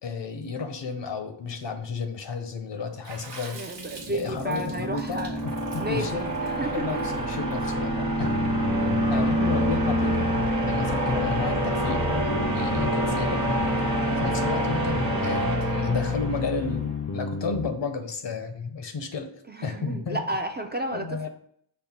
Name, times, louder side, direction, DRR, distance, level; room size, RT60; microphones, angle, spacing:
voice 1, 0.0-3.6 4.1-6.3 6.7-8.4 8.9-10.3 10.7-13.4 14.1-19.3 19.6-20.2 20.9-21.3, left 4 dB, 75° left, 6 dB, 0.7 m, -32 dB
Water / Splash splatter, 3.0-7.5, right 3 dB, 75° right, 0.9 m, -44 dB
voice 2, 3.5-5.4 5.8-7.2 9.1-9.5 19.5-21.3, right 1 dB, 25° right, 5 dB, 0.4 m, -33 dB
sound 1, 3.7-16.7, right 1 dB, 40° right, 1.1 m, -27 dB
sound 2, 8.2-17.7, left 4 dB, 40° left, 0.5 m, -31 dB
5.5 x 2.1 x 4.2 m, 0.65 s
wide cardioid pair, 90°, 44 cm